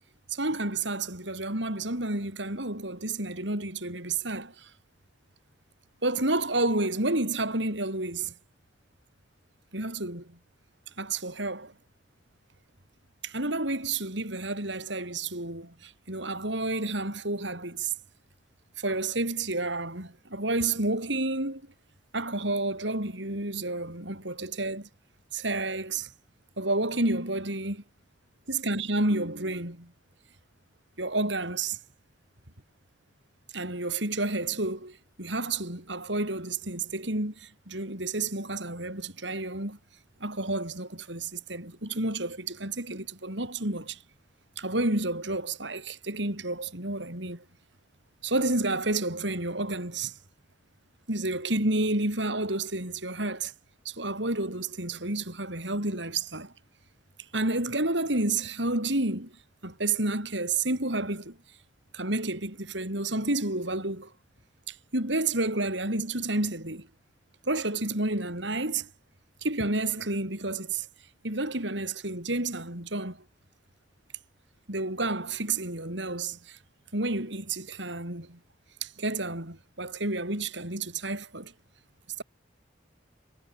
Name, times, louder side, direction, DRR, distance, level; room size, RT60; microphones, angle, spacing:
voice 1, 0.3-4.7 6.0-8.3 9.7-10.4 11.0-11.7 13.2-17.9 18.8-21.6 22.1-24.9 25.3-26.1 26.6-27.8 28.5-29.9 31.0-31.8 33.5-39.8 40.2-44.0 44.6-47.4 48.2-50.2 51.1-53.5 53.8-56.5 57.3-59.4 59.6-61.4 61.9-64.1 64.7-66.9 67.4-68.9 69.4-70.9 71.2-73.2 74.7-76.6 76.9-78.4 78.8-81.5 82.2-82.3, right 2 dB, 70° right, 6.8 m, -30 dB
head